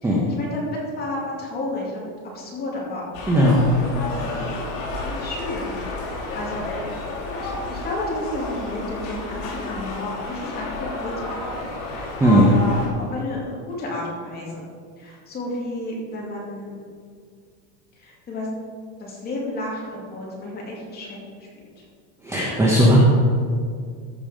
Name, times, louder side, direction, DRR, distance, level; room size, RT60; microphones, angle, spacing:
voice 1, 0.0-3.0 3.5-4.6 5.0-5.8 6.1-6.7 7.4-14.7 15.0-16.8 18.0-18.5 19.0-21.5 21.8-21.9, left 1 dB, 20° left, -4 dB, 2.5 m, -32 dB
sound 1, 3.1-12.9, left 2 dB, 70° left, 3.1 m, -31 dB
voice 2, 22.2-23.0, equal, 5° right, -4 dB, 0.8 m, -16 dB
14.5 x 5.5 x 5.1 m, 2.1 s
cardioid pair, 170°, 42 cm